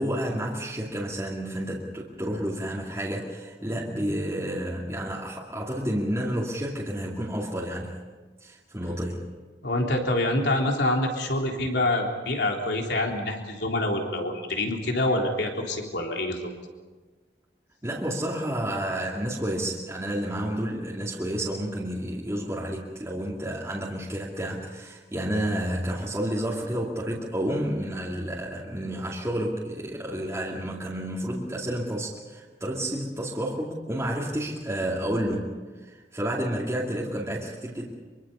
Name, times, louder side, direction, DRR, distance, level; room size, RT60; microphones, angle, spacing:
voice 1, 0.0-8.0 8.4-9.3 17.8-37.9, right 1 dB, 15° right, -5 dB, 2.5 m, -30 dB
voice 2, 9.6-16.5, left 1 dB, 65° left, 1 dB, 3.7 m, -26 dB
25.0 x 23.5 x 5.6 m, 1.3 s
head